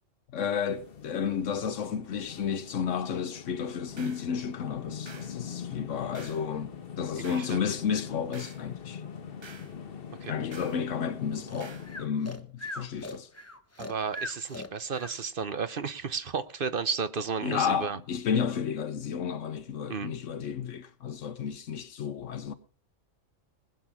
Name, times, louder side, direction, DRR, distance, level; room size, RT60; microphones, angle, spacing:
voice 1, 0.3-9.0 10.3-13.3 17.4-22.5, left 7 dB, 85° left, 1.2 m, -32 dB
sound 1, 0.7-12.1, left 7 dB, 50° left, 1.1 m, -42 dB
sound 2, 4.0-4.3 5.1-5.4 6.1-6.5 7.2-7.6 8.3-8.7 9.4-9.7 10.5-10.8 11.6-11.9, right 4 dB, 30° right, 0.5 m, -49 dB
voice 2, 7.2-7.6 10.2-10.4 13.8-18.0 19.9-20.1, right 5 dB, 50° right, 0.9 m, -33 dB
Breathing, 11.5-15.2, left 1 dB, 15° left, 1.0 m, -40 dB
20.0 x 7.2 x 6.0 m
omnidirectional pair, 1.3 m